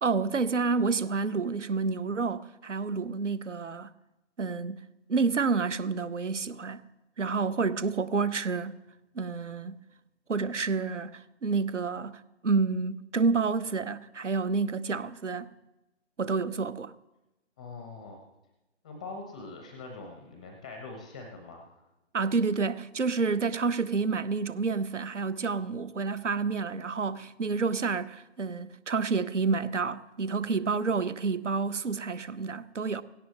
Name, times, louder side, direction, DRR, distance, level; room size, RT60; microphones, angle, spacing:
voice 1, 0.0-3.9 4.4-6.8 7.2-8.8 9.1-9.8 10.3-15.5 16.2-16.9 22.1-33.0, right 4 dB, 85° right, 0.9 m, -29 dB
voice 2, 17.6-18.2 18.8-21.7, left 3 dB, 5° left, 0.5 m, -43 dB
17.0 x 17.0 x 3.1 m
figure-of-eight pair, 145°, 35 cm